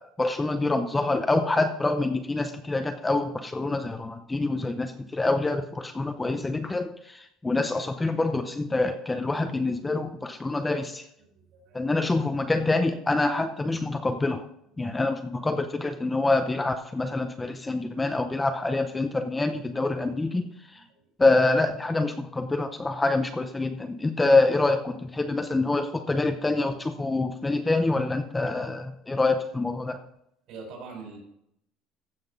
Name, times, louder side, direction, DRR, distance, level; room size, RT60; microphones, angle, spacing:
voice 1, 0.0-11.1 11.7-14.4 14.8-20.4 20.7-20.8 21.2-30.0, left 2 dB, 10° left, 7 dB, 0.6 m, -26 dB
voice 2, 11.2-11.8 14.6-14.7 20.7-21.0 30.5-31.2, right 4 dB, 55° right, 2 dB, 4.8 m, -44 dB
15.0 x 5.8 x 5.3 m, 0.76 s
cardioid pair, 160°, 0 cm